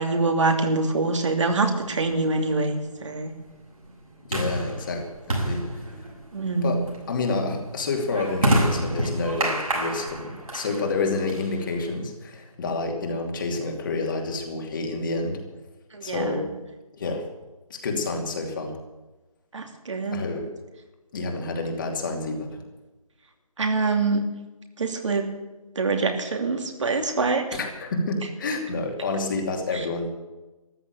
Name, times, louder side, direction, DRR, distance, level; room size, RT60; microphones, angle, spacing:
voice 1, 0.0-3.3 6.3-6.7 15.9-16.4 19.5-20.2 23.6-24.2 24.8-25.3 25.8-27.5 29.7-29.8, right 3 dB, 55° right, 4 dB, 2.8 m, -25 dB
sound 1, 1.6-12.0, right 1 dB, 70° right, 7.3 m, -29 dB
voice 2, 4.3-5.7 6.6-15.5 16.0-16.5 16.9-17.3 17.7-18.8 20.1-20.5 21.1-22.6 27.5-30.1, left 3 dB, 35° left, 2 dB, 2.7 m, -29 dB
14.0 x 12.5 x 8.2 m, 1.1 s
figure-of-eight pair, 160°, 19 cm